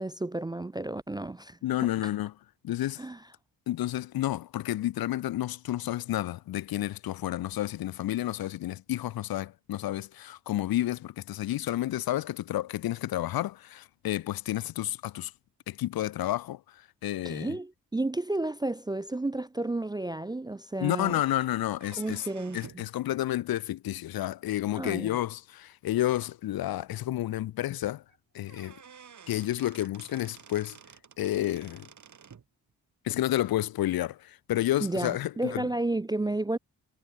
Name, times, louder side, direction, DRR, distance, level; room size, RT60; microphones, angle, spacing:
voice 1, 0.0-1.9 3.0-3.2 17.2-21.2 22.0-22.8 24.8-25.2 34.8-36.6, right 2 dB, 10° right, 0.3 m, -32 dB
voice 2, 1.6-2.3 2.6-3.0 3.7-15.3 15.7-16.6 17.0-17.5 20.8-22.2 22.5-28.0 28.3-28.8 29.3-30.8 31.2-31.9 33.0-35.7, left 14 dB, 65° left, 0.5 m, -30 dB
sound 1, 21.7-22.9 24.7-24.8 25.7-25.8 26.2-26.3 26.6-26.7 28.1-28.2 28.5-32.5, right 7 dB, 45° right, 1.3 m, -51 dB
supercardioid pair, 45°, 40 cm